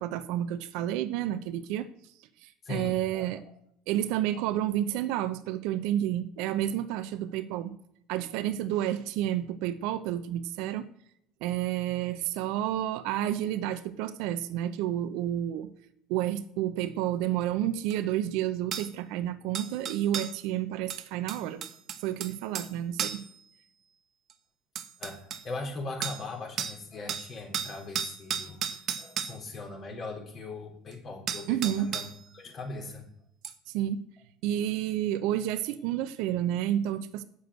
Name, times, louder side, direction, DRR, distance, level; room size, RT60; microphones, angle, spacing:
voice 1, 0.0-1.9 2.4-3.4 3.9-7.7 8.1-10.9 11.4-15.7 16.1-21.6 22.0-23.2 31.5-31.9 33.7-34.0 34.4-37.2, right 12 dB, 65° right, 12 dB, 0.6 m, -30 dB
voice 2, 2.6-3.4 4.3-4.4 25.0-25.2 25.4-32.1 32.3-33.1, left 3 dB, 40° left, 1 dB, 3.9 m, -40 dB
sound 1, 17.9-18.0 18.7-18.9 19.5-20.4 20.9-22.7 23.0-23.3 24.3-24.4 24.7-25.4 26.0-26.3 26.6-26.8 27.1-29.4 30.9-31.0 31.3-32.2 33.4-33.5, right 8 dB, 50° right, 1.0 m, -34 dB
7.7 x 7.0 x 7.9 m, 0.73 s
hypercardioid pair, 75°, 0 cm